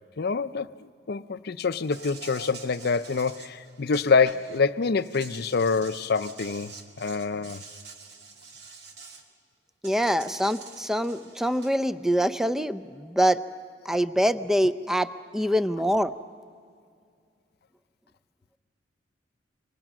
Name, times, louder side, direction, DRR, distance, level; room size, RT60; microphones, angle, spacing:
voice 1, 0.2-0.7 1.1-7.6, left 4 dB, 60° left, 0.6 m, -26 dB
Insect, 1.8-4.6 5.0-9.2 9.8-11.8, right 4 dB, 65° right, 2.0 m, -46 dB
voice 2, 9.8-13.4 13.9-16.1, equal, 5° right, 0.5 m, -25 dB
29.0 x 25.0 x 6.1 m
head